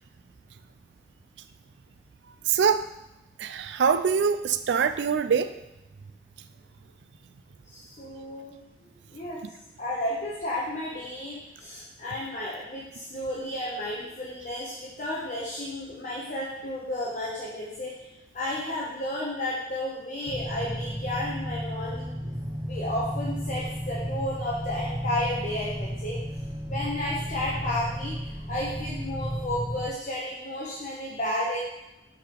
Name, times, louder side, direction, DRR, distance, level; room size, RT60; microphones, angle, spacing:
voice 1, 2.5-2.9 3.4-5.5 9.4-9.5, right 6 dB, 85° right, 11 dB, 0.4 m, -24 dB
voice 2, 7.7-8.6 9.1-9.4 9.8-17.9 18.3-22.3 22.7-26.2 26.7-31.6, left 1 dB, 45° left, -6 dB, 1.0 m, -32 dB
sound 1, 20.3-29.9, equal, 25° right, 0.8 m, -33 dB
6.7 x 3.8 x 4.4 m, 0.91 s
head